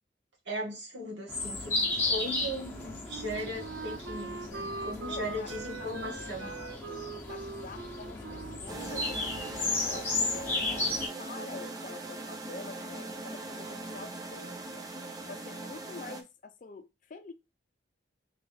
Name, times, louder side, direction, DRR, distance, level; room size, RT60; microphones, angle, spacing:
voice 1, 0.4-1.8 2.0-2.7 3.0-6.6, equal, 70° right, 1.6 m, -37 dB
sound 1, 1.3-11.1, left 2 dB, 15° left, 0.8 m, -34 dB
Wind instrument woodwind instrument, 2.6-10.1, right 4 dB, 85° right, 0.4 m, -42 dB
voice 2, 5.1-5.5 5.8-9.5 9.8-10.9 11.2-14.9 15.3-17.3, left 3 dB, 45° left, 0.4 m, -46 dB
sound 2, 8.7-16.2, right 2 dB, 20° right, 0.4 m, -40 dB
3.2 x 2.6 x 3.9 m
head